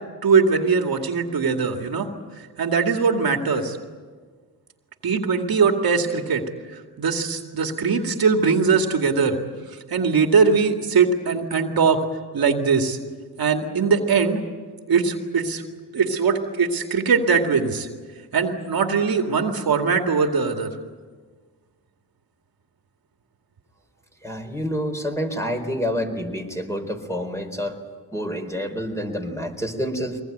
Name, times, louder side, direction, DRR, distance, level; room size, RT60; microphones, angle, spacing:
voice 1, 0.2-2.1 2.6-3.8 5.0-6.4 7.0-9.4 9.9-12.0 12.3-13.0 13.4-14.4 14.9-15.6 15.9-17.9 18.3-20.7, right 5 dB, 60° right, 4 dB, 2.3 m, -21 dB
voice 2, 24.2-27.8 28.1-30.2, equal, 5° left, 4 dB, 4.4 m, -28 dB
23.5 x 20.5 x 9.3 m, 1.5 s
cardioid pair, 65°, 40 cm